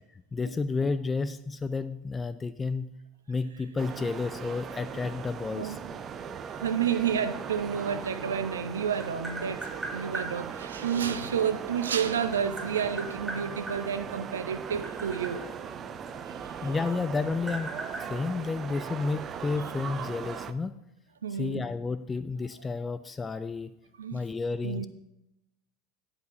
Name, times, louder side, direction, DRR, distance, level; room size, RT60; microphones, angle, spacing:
voice 1, 0.3-2.9 3.3-5.8 16.6-20.7 21.3-23.7 24.1-24.9, left 4 dB, 20° left, 0.4 m, -31 dB
sound 1, 3.8-20.5, right 7 dB, 35° right, 0.5 m, -39 dB
voice 2, 6.5-15.4 16.3-16.7 21.2-21.7 24.0-24.2 24.6-24.9, right 7 dB, 75° right, 0.7 m, -30 dB
Tap, 8.8-10.3 11.6-13.8 14.5-16.7 17.0-19.0, right 2 dB, 10° right, 3.7 m, -39 dB
10.5 x 5.0 x 6.1 m
figure-of-eight pair, 80°, 0 cm